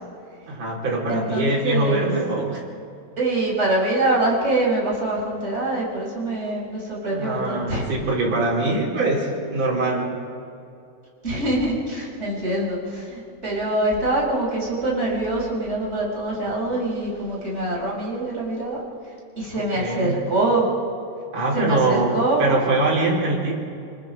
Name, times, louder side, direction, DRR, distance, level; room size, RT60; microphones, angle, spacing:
voice 1, 0.5-2.6 7.1-10.2 19.5-20.2 21.3-23.6, right 2 dB, 45° right, -4 dB, 5.6 m, -23 dB
voice 2, 1.1-2.1 3.2-7.9 11.2-18.8 19.4-20.7 21.5-22.5, right 2 dB, 15° right, -4 dB, 5.9 m, -24 dB
27.5 x 20.5 x 5.1 m, 2.5 s
omnidirectional pair, 4.1 m